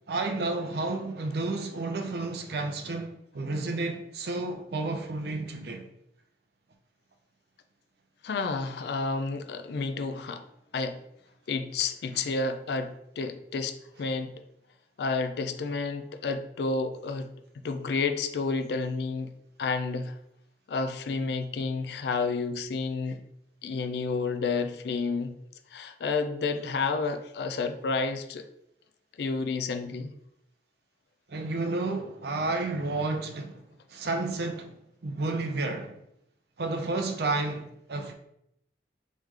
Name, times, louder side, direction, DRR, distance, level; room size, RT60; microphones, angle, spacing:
voice 1, 0.1-5.9 31.3-33.6 33.9-34.7 35.0-35.9 36.6-38.1, right 2 dB, 60° right, 0.5 m, -31 dB
voice 2, 8.2-10.5 10.7-11.0 11.5-14.3 15.0-17.3 17.6-19.3 19.6-20.2 20.7-23.2 23.6-25.4 25.7-28.5 29.2-30.1, left 4 dB, 65° left, 0.4 m, -30 dB
3.6 x 3.1 x 3.2 m
head